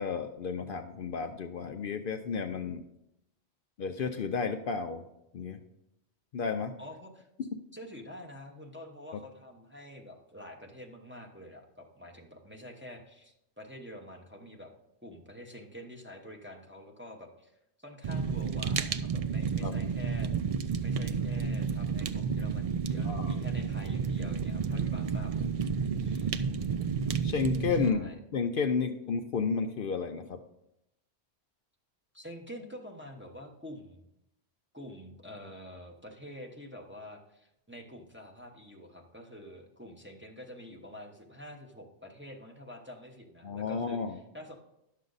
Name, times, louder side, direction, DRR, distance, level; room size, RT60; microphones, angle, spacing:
voice 1, 0.0-2.8 3.8-5.1 5.3-5.6 6.3-6.7 9.1-9.2 19.6-19.8 23.0-23.4 27.2-30.4 43.4-44.2, left 5 dB, 60° left, 6 dB, 0.7 m, -32 dB
voice 2, 6.8-7.2 7.7-14.7 15.0-20.3 20.8-26.3 27.8-28.2 32.1-34.1 34.7-44.6, equal, 10° right, 0 dB, 0.9 m, -47 dB
Fire, 18.0-27.9, right 6 dB, 60° right, 0.3 m, -31 dB
10.5 x 6.6 x 4.0 m, 0.83 s
omnidirectional pair, 1.1 m